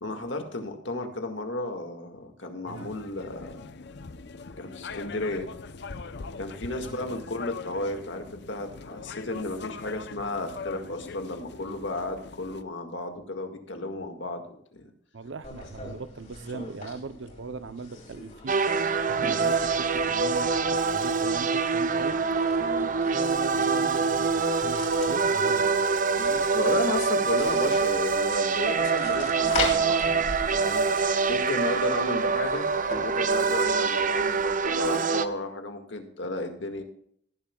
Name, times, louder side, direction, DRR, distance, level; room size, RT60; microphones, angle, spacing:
voice 1, 0.0-3.7 4.6-5.5 6.4-14.8 22.6-23.0 26.2-30.1 30.4-31.0 31.3-32.7 33.0-36.8, left 2 dB, 80° left, 5 dB, 1.9 m, -33 dB
sound 1, 2.7-12.6, left 4 dB, 65° left, 0.7 m, -42 dB
voice 2, 15.1-18.6 19.1-22.2 23.0-25.9, right 3 dB, 80° right, 14 dB, 0.7 m, -39 dB
sound 2, 15.4-34.9, left 3 dB, 40° left, 4.3 m, -41 dB
sound 3, 18.5-35.3, right 4 dB, 45° right, 0.7 m, -25 dB
18.5 x 11.0 x 2.3 m, 0.65 s
head